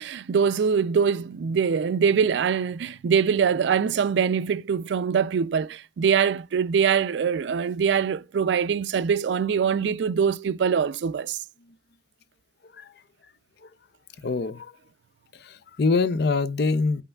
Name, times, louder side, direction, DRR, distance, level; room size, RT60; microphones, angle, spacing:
voice 1, 0.0-11.4, right 6 dB, 70° right, 0.3 m, -23 dB
voice 2, 14.2-14.7 15.4-17.0, left 4 dB, 60° left, 0.5 m, -24 dB
8.1 x 5.5 x 2.3 m
head